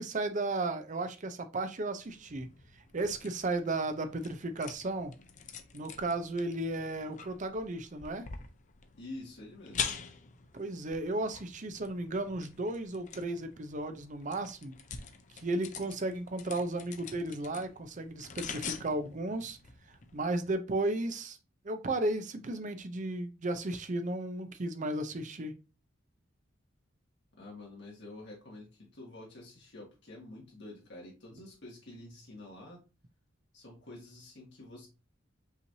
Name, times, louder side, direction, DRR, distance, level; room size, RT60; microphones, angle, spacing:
voice 1, 0.0-2.5 2.9-5.1 5.7-8.3 10.5-14.8 15.4-19.6 20.1-21.4 21.6-25.6, right 2 dB, 40° right, 0.6 m, -34 dB
sound 1, 2.0-20.5, left 6 dB, 40° left, 0.5 m, -45 dB
voice 2, 9.0-9.9 27.3-32.8 33.5-34.9, left 2 dB, 60° left, 1.9 m, -48 dB
5.6 x 3.1 x 2.6 m
head